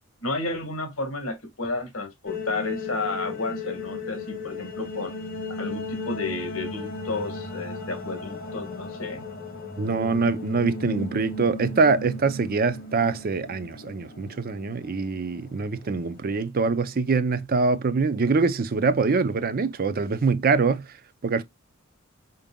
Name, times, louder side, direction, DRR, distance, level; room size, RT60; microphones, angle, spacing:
voice 1, 0.2-5.1 5.5-9.3, left 2 dB, 75° left, 1.5 m, -32 dB
sound 1, 2.3-16.4, left 2 dB, 45° left, 1.8 m, -36 dB
voice 2, 9.8-20.9 21.2-21.4, right 4 dB, 45° right, 0.5 m, -24 dB
5.2 x 3.9 x 2.2 m
head